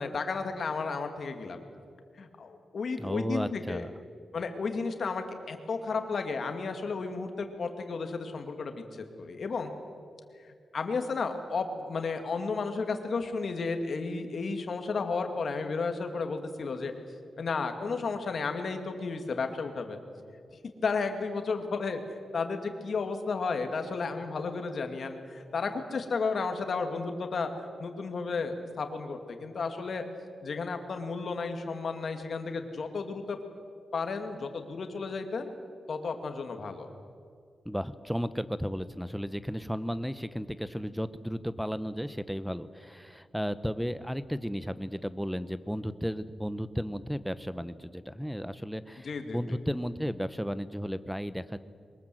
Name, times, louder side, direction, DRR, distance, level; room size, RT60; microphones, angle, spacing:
voice 1, 0.0-1.6 2.2-3.8 4.3-9.7 10.4-16.9 17.4-20.0 20.8-22.0 22.3-27.5 27.8-30.0 30.4-33.4 33.9-35.5 35.9-36.9 49.0-49.4, left 4 dB, 55° left, 6 dB, 2.3 m, -33 dB
voice 2, 3.0-4.0 37.6-51.6, equal, ahead, 14 dB, 0.8 m, -34 dB
23.0 x 21.0 x 7.8 m, 2.3 s
wide cardioid pair, 125°, 0 cm